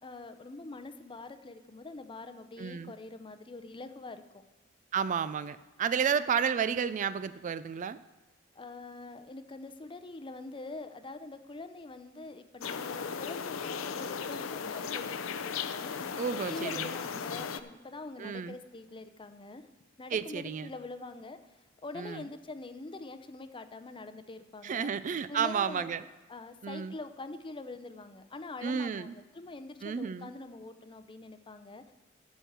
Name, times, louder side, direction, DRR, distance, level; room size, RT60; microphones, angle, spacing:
voice 1, 0.0-4.4 8.6-15.9 16.5-19.6 20.0-24.9 25.3-25.9 26.3-31.9, left 2 dB, 25° left, 10 dB, 0.6 m, -44 dB
voice 2, 2.6-2.9 4.9-8.0 16.2-17.0 18.2-18.5 20.1-20.7 22.0-22.2 24.6-26.0 26.6-26.9 28.6-29.1 29.8-30.3, right 7 dB, 40° right, 14 dB, 0.3 m, -31 dB
sound 1, 12.6-17.6, left 6 dB, 80° left, 0.5 m, -36 dB
13.0 x 4.5 x 7.9 m, 1.2 s
head